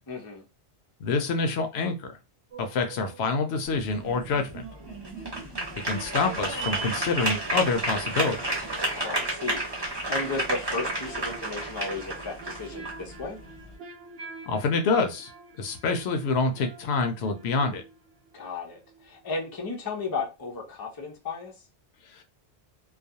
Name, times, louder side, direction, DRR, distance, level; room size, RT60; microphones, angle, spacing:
voice 1, 0.1-0.4 8.9-13.4 18.3-21.5, left 3 dB, 30° left, 0.4 m, -34 dB
voice 2, 1.0-2.2 2.6-4.7 5.9-8.6 14.5-15.3 15.6-17.8 22.1-22.2, left 4 dB, 75° left, 0.8 m, -27 dB
sound 1, 2.5-3.7 4.8-19.3 19.6-19.7, right 4 dB, 70° right, 0.9 m, -48 dB
sound 2, 3.7-13.7, right 2 dB, 25° right, 0.8 m, -32 dB
2.4 x 2.2 x 2.7 m
omnidirectional pair, 1.1 m